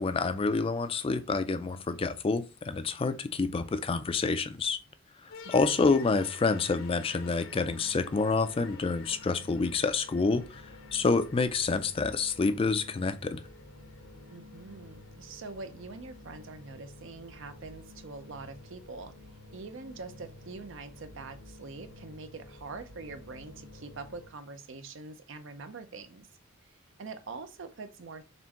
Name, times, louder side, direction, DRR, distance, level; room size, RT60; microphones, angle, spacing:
voice 1, 0.0-4.8 5.5-10.6 10.9-13.4, left 4 dB, 25° left, 0.4 m, -28 dB
sound 1, 5.3-24.3, left 3 dB, 80° left, 0.8 m, -50 dB
voice 2, 5.4-6.0 14.3-19.1 19.5-26.3 27.0-28.2, right 3 dB, 65° right, 0.6 m, -44 dB
4.3 x 3.4 x 2.9 m
head